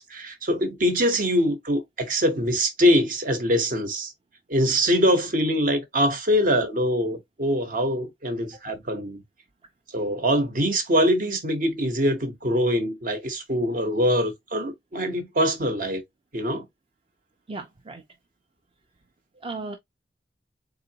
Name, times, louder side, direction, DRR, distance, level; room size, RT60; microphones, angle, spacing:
voice 1, 0.0-4.1 4.5-9.2 9.9-16.0 16.3-16.6, equal, 50° right, 1.0 m, -23 dB
voice 2, 17.5-18.0 19.4-19.8, right 3 dB, 30° right, 0.6 m, -35 dB
3.8 x 3.8 x 2.8 m
head